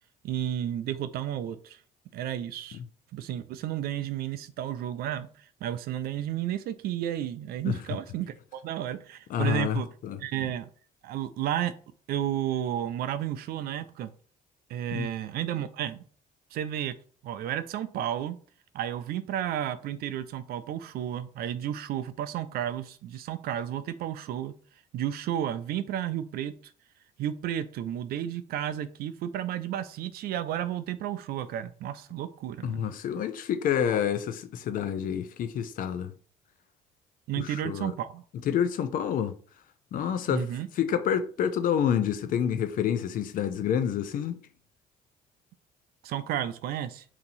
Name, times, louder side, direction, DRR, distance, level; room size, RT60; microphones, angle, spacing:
voice 1, 0.2-1.8 2.1-2.8 3.1-9.9 10.2-10.7 11.0-11.7 12.1-14.1 14.7-16.0 16.5-16.9 17.2-18.4 18.7-24.5 24.9-26.5 27.2-32.9 37.3-38.2 40.3-40.7 46.0-47.0, right 11 dB, 65° right, 0.4 m, -32 dB
voice 2, 9.3-10.5 14.9-15.1 32.6-36.1 37.4-37.9 38.4-39.4 39.9-40.5 40.8-44.4, left 8 dB, 55° left, 0.4 m, -28 dB
2.9 x 2.6 x 4.0 m
cardioid pair, 110°, 17 cm